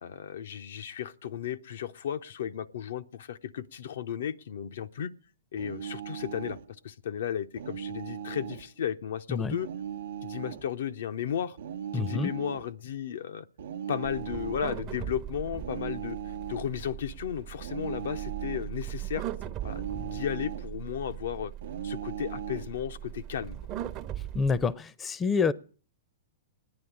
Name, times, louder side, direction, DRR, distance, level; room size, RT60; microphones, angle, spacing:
voice 1, 0.0-5.1 5.5-6.6 6.8-9.7 10.2-11.6 11.9-13.5 13.9-16.2 16.5-19.3 19.6-21.5 21.8-23.6, left 9 dB, 75° left, 0.6 m, -34 dB
sound 1, 5.6-6.7 7.6-8.7 9.6-10.7 11.6-12.7 13.6-14.7 15.6-16.7 17.6-18.7 19.6-20.7 21.6-22.7, right 8 dB, 80° right, 0.8 m, -38 dB
voice 2, 11.9-12.3 24.3-25.5, left 5 dB, 20° left, 0.6 m, -27 dB
sound 2, 14.0-24.7, right 12 dB, 35° right, 0.8 m, -39 dB
10.0 x 9.6 x 9.9 m
hypercardioid pair, 125°, 0 cm